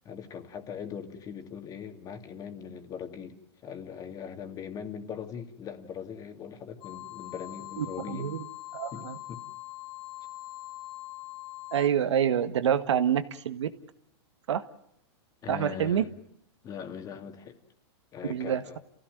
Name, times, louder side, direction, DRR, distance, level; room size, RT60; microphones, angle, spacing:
voice 1, 0.0-8.3 8.9-9.4 15.4-16.1 16.6-17.6 18.1-18.8, left 7 dB, 25° left, 7 dB, 2.6 m, -40 dB
sound 1, 6.8-11.9, left 18 dB, 50° left, 2.0 m, -42 dB
voice 2, 7.8-8.4 8.7-9.2 11.7-13.7 14.5-14.6 15.5-16.0 18.3-18.6, right 9 dB, 85° right, 11 dB, 1.7 m, -27 dB
29.0 x 16.0 x 9.2 m, 0.76 s
hypercardioid pair, 145°, 15 cm